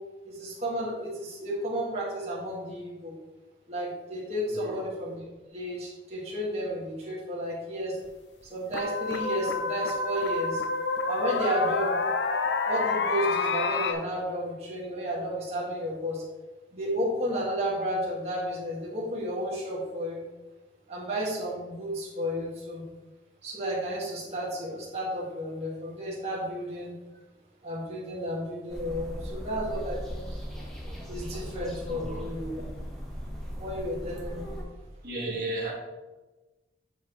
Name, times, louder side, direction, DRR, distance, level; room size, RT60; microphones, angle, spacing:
voice 1, 0.3-3.1 3.7-5.2 5.5-8.0 8.5-10.6 11.1-12.0 12.7-16.2 16.7-20.2 20.9-22.8 23.4-26.9 27.6-30.3 31.1-32.6 33.6-34.5, equal, 35° right, -7 dB, 1.9 m, -32 dB
voice 2, 4.5-4.8 31.9-32.2 35.0-35.7, right 2 dB, 55° right, -6 dB, 1.9 m, -34 dB
sound 1, 8.1-8.2 8.7-13.9, left 4 dB, 85° left, 0.6 m, -28 dB
sound 2, 28.7-34.6, equal, 5° left, 1.2 m, -38 dB
9.0 x 4.7 x 3.2 m, 1.2 s
head